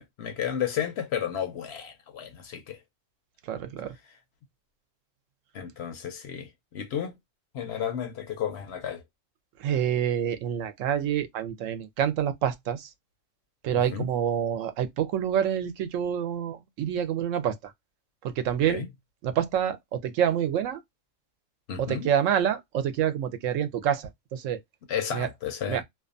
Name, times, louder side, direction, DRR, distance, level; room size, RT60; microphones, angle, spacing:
voice 1, 0.0-2.8 5.5-7.2 7.5-9.0 13.9-14.1 18.7-18.9 21.7-22.1 24.9-25.8, left 8 dB, 65° left, 0.7 m, -32 dB
voice 2, 3.4-3.9 9.6-12.9 13.6-17.7 18.2-18.8 19.2-20.8 21.8-24.6 25.1-25.3 25.7-25.8, right 9 dB, 75° right, 0.9 m, -27 dB
2.5 x 2.3 x 2.4 m
omnidirectional pair, 1.4 m